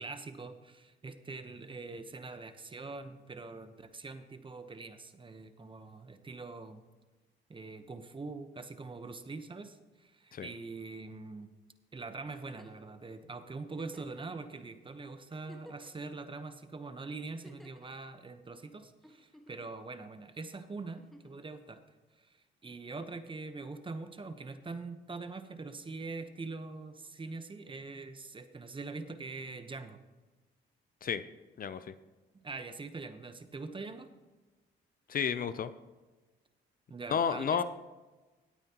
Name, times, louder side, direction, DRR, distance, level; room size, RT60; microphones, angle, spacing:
voice 1, 0.0-6.8 7.5-11.5 11.9-21.8 22.2-22.4 22.6-30.0 32.4-34.1 36.9-37.6, right 3 dB, 25° right, 9 dB, 1.0 m, -43 dB
Giggle, 12.3-12.9 13.7-14.2 14.8-14.9 15.3-16.1 17.2-17.9 19.0-19.7 21.0-21.4 22.9-23.0, equal, ahead, 1.5 m, -55 dB
voice 2, 35.1-35.7 37.1-37.6, left 7 dB, 45° left, 13 dB, 0.6 m, -31 dB
17.0 x 9.0 x 3.0 m, 1.2 s
cardioid pair, 90°, 20 cm